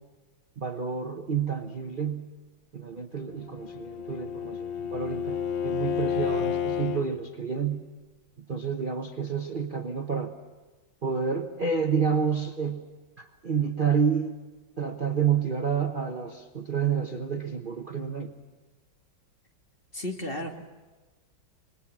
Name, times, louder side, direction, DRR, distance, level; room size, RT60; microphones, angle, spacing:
voice 1, 0.6-2.3 2.7-7.8 8.5-10.3 11.0-12.8 13.2-14.4 14.8-18.3, right 6 dB, 35° right, 4 dB, 0.9 m, -29 dB
Bowed string instrument, 3.4-7.1, left 8 dB, 65° left, 1.7 m, -30 dB
voice 2, 19.9-20.7, left 1 dB, 30° left, 3 dB, 1.6 m, -34 dB
25.5 x 21.5 x 7.3 m, 1.2 s
omnidirectional pair, 2.2 m